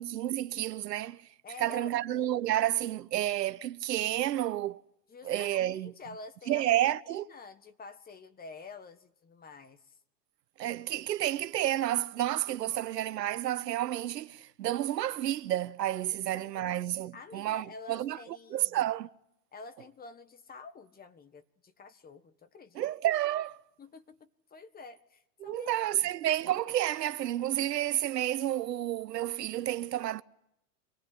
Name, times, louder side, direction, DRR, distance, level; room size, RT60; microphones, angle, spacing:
voice 1, 0.0-1.3 1.6-4.8 5.2-5.9 6.5-7.3 10.6-19.1 22.7-23.6 25.4-30.2, right 13 dB, 85° right, 1.0 m, -30 dB
voice 2, 1.4-1.9 5.1-6.8 7.1-9.9 12.7-12.8 16.3-16.7 17.1-18.8 19.5-22.9 23.8-25.7, left 4 dB, 20° left, 1.5 m, -49 dB
25.5 x 19.0 x 9.6 m
hypercardioid pair, 115°, 48 cm